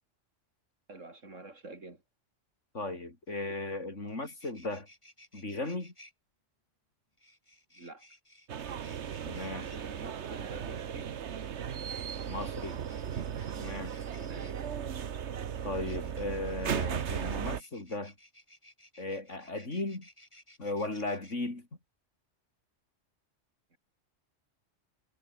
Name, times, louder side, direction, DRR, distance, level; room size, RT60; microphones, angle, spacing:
voice 1, 0.9-2.0 7.7-8.1 9.7-11.1 14.2-14.7 23.7-23.8, right 2 dB, 80° right, 4.5 m, -47 dB
voice 2, 2.7-4.9 5.3-5.9 9.2-9.7 12.2-12.8 13.6-14.0 15.6-18.1 19.0-20.1 20.6-21.7, left 2 dB, 70° left, 5.0 m, -36 dB
sound 1, 3.7-3.8 4.0-6.1 7.2-9.8 11.2-14.6 15.6-21.3, left 1 dB, 25° left, 7.7 m, -58 dB
sound 2, 8.5-17.6, right 8 dB, 65° right, 1.3 m, -36 dB
omnidirectional pair, 1.3 m